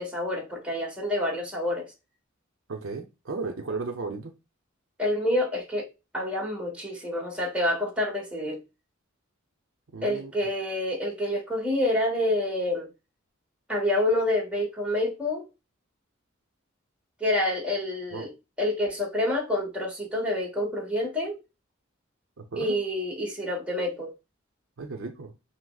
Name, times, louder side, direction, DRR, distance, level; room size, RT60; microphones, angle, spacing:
voice 1, 0.0-1.9 5.0-5.9 6.1-8.6 10.0-12.9 13.7-15.4 17.2-18.3 18.6-21.4 22.6-24.1, left 1 dB, 5° right, 1.2 m, -27 dB
voice 2, 2.7-4.3 9.9-10.3 18.1-18.3 22.4-22.8 24.8-25.3, right 4 dB, 70° right, 0.6 m, -35 dB
6.0 x 2.0 x 2.3 m
head